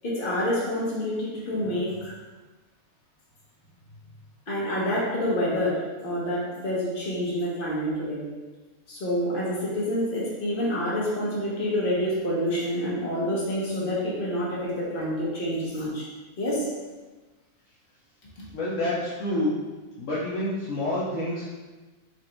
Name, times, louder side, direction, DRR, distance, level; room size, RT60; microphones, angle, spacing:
voice 1, 0.0-2.1 4.5-8.2 8.9-16.1 16.4-16.7 18.4-18.5, equal, 45° left, -6 dB, 1.3 m, -27 dB
voice 2, 18.5-19.5 20.0-21.4, left 1 dB, 65° left, -7 dB, 1.0 m, -28 dB
4.0 x 2.5 x 4.3 m, 1.2 s
omnidirectional pair, 1.4 m